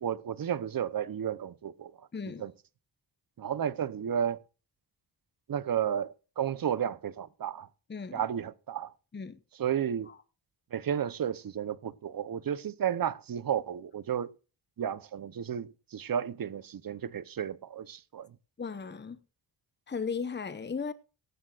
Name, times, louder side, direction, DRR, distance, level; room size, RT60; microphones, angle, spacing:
voice 1, 0.0-1.9 2.4-2.5 3.4-4.4 5.5-7.7 8.1-8.9 9.5-10.1 10.7-14.3 14.8-18.3, right 9 dB, 55° right, 0.8 m, -32 dB
voice 2, 2.1-2.5 7.9-8.2 9.1-9.4 18.6-19.2 19.9-20.9, left 5 dB, 25° left, 1.0 m, -36 dB
17.5 x 14.0 x 2.5 m
cardioid pair, 85°, 40 cm